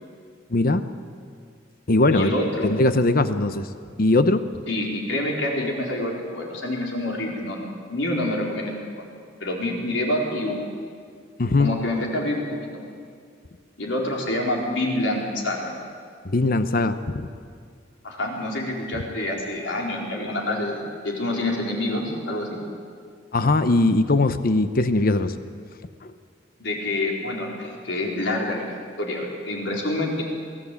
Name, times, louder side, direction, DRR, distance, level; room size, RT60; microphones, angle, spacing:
voice 1, 0.5-0.8 1.9-2.3 2.6-3.7 4.0-4.5 11.4-11.7 16.2-17.0 23.3-25.3, left 2 dB, 50° left, 11 dB, 0.8 m, -20 dB
voice 2, 2.1-2.7 4.7-8.7 9.4-10.6 11.6-12.7 13.8-15.7 18.0-22.6 26.6-30.2, left 1 dB, 80° left, -1 dB, 4.4 m, -27 dB
23.5 x 16.0 x 8.4 m, 2.1 s
head